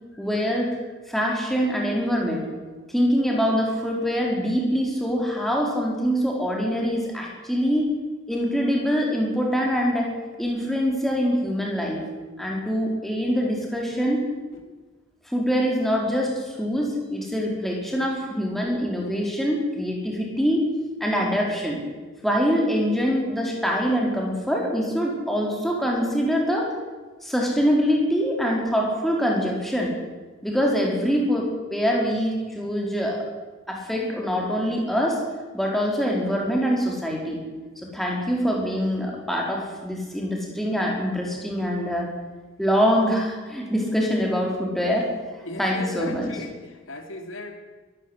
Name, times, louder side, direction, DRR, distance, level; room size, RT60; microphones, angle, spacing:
voice 1, 0.2-0.8 1.1-2.5 2.9-7.9 8.3-10.1 10.4-12.0 12.4-14.3 15.3-20.7 21.0-21.8 22.2-26.7 27.2-29.9 30.4-33.2 33.7-35.2 35.5-37.4 37.8-42.1 42.6-46.3, equal, ahead, -1 dB, 4.8 m, -24 dB
voice 2, 45.4-47.6, left 1 dB, 80° left, 5 dB, 3.1 m, -36 dB
22.5 x 14.0 x 10.0 m, 1.3 s
head